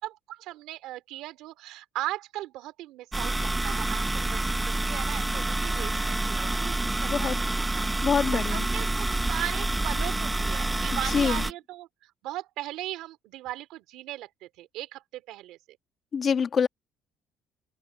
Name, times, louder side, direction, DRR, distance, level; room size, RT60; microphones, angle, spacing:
voice 1, 0.0-4.4 4.8-15.6, right 15 dB, 80° right, 2.9 m, -38 dB
sound 1, 3.1-11.5, right 2 dB, 10° right, 1.5 m, -28 dB
voice 2, 8.0-8.6 10.9-11.4 16.1-16.7, left 6 dB, 40° left, 1.6 m, -25 dB
open air
cardioid pair, 120°, 0 cm